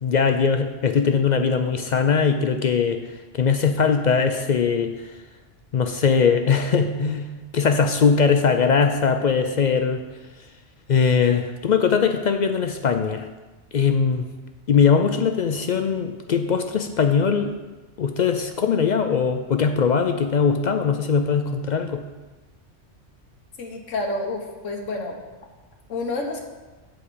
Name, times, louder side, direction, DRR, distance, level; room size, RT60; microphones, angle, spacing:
voice 1, 0.0-5.1 5.7-10.0 10.9-13.3 13.7-14.3 14.7-17.6 18.0-22.0, left 6 dB, 60° left, 7 dB, 0.4 m, -21 dB
voice 2, 23.6-25.2 25.9-26.5, left 2 dB, 85° left, 1 dB, 1.4 m, -29 dB
7.8 x 4.9 x 6.8 m, 1.2 s
omnidirectional pair, 1.2 m